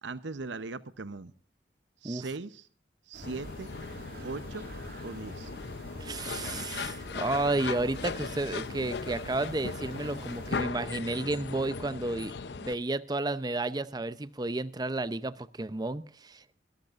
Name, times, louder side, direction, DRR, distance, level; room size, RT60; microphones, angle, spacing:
voice 1, 0.0-1.3 2.0-2.7 3.1-3.7 4.2-4.7 5.0-5.5, right 3 dB, 90° right, 14 dB, 0.8 m, -39 dB
sound 1, 3.1-10.6, right 1 dB, 50° right, 2.1 m, -47 dB
sound 2, 3.2-12.7, left 5 dB, 65° left, 0.6 m, -38 dB
voice 2, 6.0-16.4, right 2 dB, 20° right, 15 dB, 0.6 m, -32 dB
24.0 x 13.5 x 2.5 m, 0.41 s
head